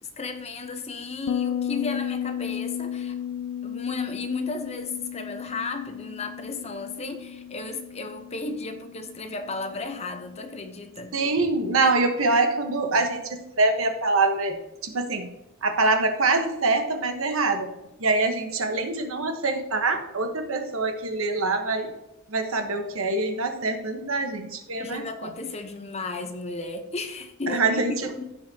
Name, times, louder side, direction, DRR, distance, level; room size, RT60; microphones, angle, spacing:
voice 1, 0.0-3.1 3.6-11.1 24.8-28.3, left 3 dB, 30° left, 7 dB, 0.9 m, -34 dB
Bass guitar, 1.3-10.6, left 9 dB, 90° left, 0.4 m, -34 dB
voice 2, 11.1-15.3 15.6-17.7 18.0-21.9 22.3-25.3 27.5-28.1, right 3 dB, 65° right, 5 dB, 1.2 m, -25 dB
15.5 x 5.4 x 2.9 m, 0.97 s
head